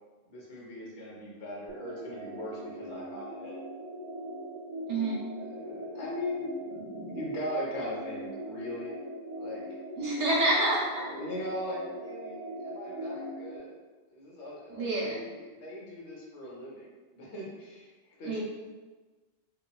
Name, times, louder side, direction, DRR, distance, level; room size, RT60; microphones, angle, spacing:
voice 1, 0.3-3.5 5.5-8.9 9.4-9.6 10.2-10.3 11.1-13.7 14.1-16.9 17.1-17.9 18.2-18.4, left 1 dB, 80° left, -4 dB, 1.1 m, -39 dB
sound 1, 1.7-13.6, right 1 dB, 55° right, 0.5 m, -41 dB
voice 2, 4.9-5.2 10.0-11.0 14.8-15.2 18.2-18.4, right 1 dB, 85° right, -5 dB, 1.1 m, -27 dB
3.2 x 2.1 x 2.3 m, 1.3 s
omnidirectional pair, 1.2 m